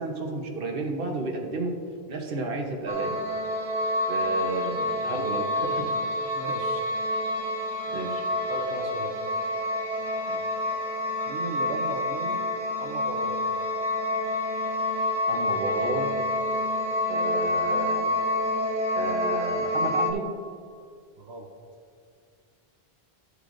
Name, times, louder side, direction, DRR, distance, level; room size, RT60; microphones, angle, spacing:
voice 1, 0.0-1.7 2.1-3.2 4.1-5.9 7.9-8.3 10.3-10.4 15.3-16.1 17.1-18.1 18.9-20.3, right 2 dB, 60° right, 1 dB, 1.2 m, -32 dB
sound 1, 2.9-20.1, left 1 dB, 25° right, 1.0 m, -28 dB
voice 2, 6.3-6.8 8.5-9.2 11.2-12.4 12.8-13.4 21.2-21.5, right 4 dB, 85° right, 2 dB, 1.1 m, -36 dB
11.0 x 8.1 x 2.6 m, 2.3 s
omnidirectional pair, 1.1 m